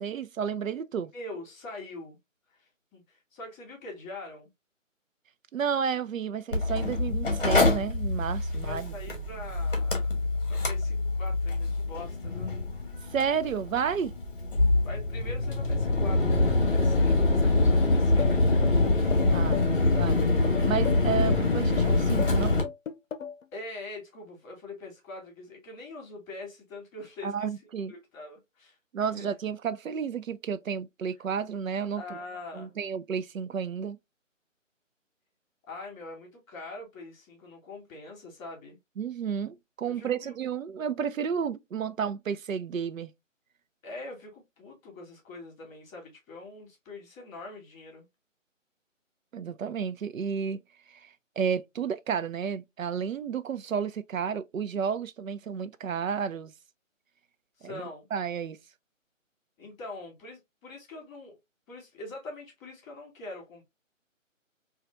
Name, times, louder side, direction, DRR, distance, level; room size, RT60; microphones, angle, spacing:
voice 1, 0.0-1.1 5.5-8.9 13.1-14.1 19.3-19.6 19.9-20.2 20.6-22.5 27.2-27.9 28.9-32.2 32.5-34.0 39.0-43.1 49.3-50.6 50.9-56.5 57.6-57.8 58.1-58.6, right 7 dB, 85° right, 0.6 m, -31 dB
voice 2, 1.1-2.2 2.5-4.5 8.5-10.2 10.5-12.6 14.8-18.8 23.5-27.5 27.9-28.8 29.2-29.3 31.9-32.7 35.7-38.8 39.9-40.3 43.8-48.0 57.6-58.1 59.6-61.3 61.7-63.6, left 2 dB, ahead, 0.9 m, -43 dB
Mechanical fan, 6.5-22.6, left 2 dB, 45° left, 1.4 m, -25 dB
sound 1, 18.2-23.4, left 7 dB, 75° left, 0.7 m, -35 dB
4.5 x 2.4 x 2.5 m
figure-of-eight pair, 170°, 39 cm